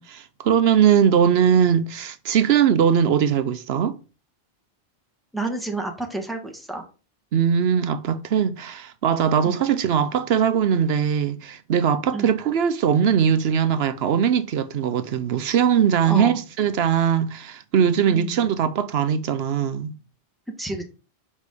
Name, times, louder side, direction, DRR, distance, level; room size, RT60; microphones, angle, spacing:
voice 1, 0.0-4.0 7.3-19.9, right 8 dB, 80° right, 0.9 m, -20 dB
voice 2, 5.3-6.8 9.4-9.6 12.1-12.3 16.0-16.4 18.1-18.5 20.6-20.9, right 2 dB, ahead, 1.7 m, -30 dB
5.5 x 5.1 x 6.6 m
omnidirectional pair, 1.0 m